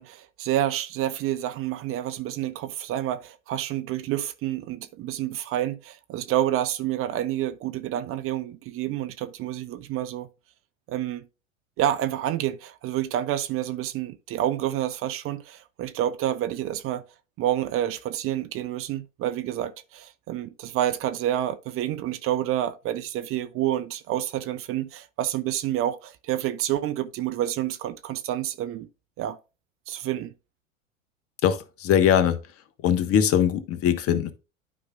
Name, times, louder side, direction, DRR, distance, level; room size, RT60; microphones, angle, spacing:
voice 1, 0.0-10.3 10.9-11.3 11.8-17.0 17.4-28.9 29.2-29.4 29.9-30.3, right 12 dB, 35° right, 0.7 m, -28 dB
voice 2, 31.4-32.4 32.8-34.3, left 9 dB, 35° left, 1.2 m, -21 dB
12.0 x 5.0 x 2.3 m
figure-of-eight pair, 85°, 39 cm